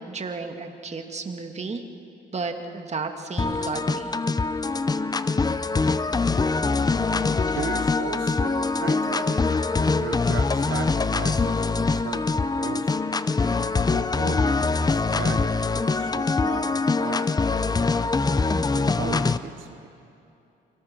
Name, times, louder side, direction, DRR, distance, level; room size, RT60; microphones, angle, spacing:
voice 1, 0.0-1.8 2.3-4.2, right 4 dB, 35° right, 4 dB, 2.1 m, -33 dB
sound 1, 3.4-19.4, left 4 dB, 20° left, 0.7 m, -23 dB
voice 2, 7.5-9.4 10.0-13.0 13.9-17.5 18.2-20.0, right 10 dB, 80° right, 8 dB, 0.8 m, -37 dB
28.0 x 23.0 x 6.1 m, 2.8 s
cardioid pair, 90°, 20 cm